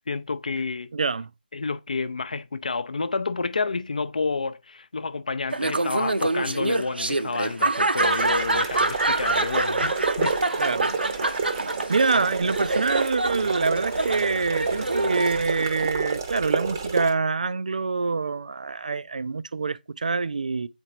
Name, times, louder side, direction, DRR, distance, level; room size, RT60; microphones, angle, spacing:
voice 1, 0.1-0.9 1.5-10.3, left 4 dB, 50° left, 0.5 m, -29 dB
voice 2, 0.9-1.3 10.6-10.9 11.3-20.7, right 4 dB, 50° right, 0.4 m, -26 dB
Laughter, 5.5-15.9, right 2 dB, 80° right, 0.7 m, -26 dB
sound 1, 7.9-17.1, right 5 dB, 20° right, 0.7 m, -30 dB
8.0 x 4.4 x 2.9 m
figure-of-eight pair, 165°, 5 cm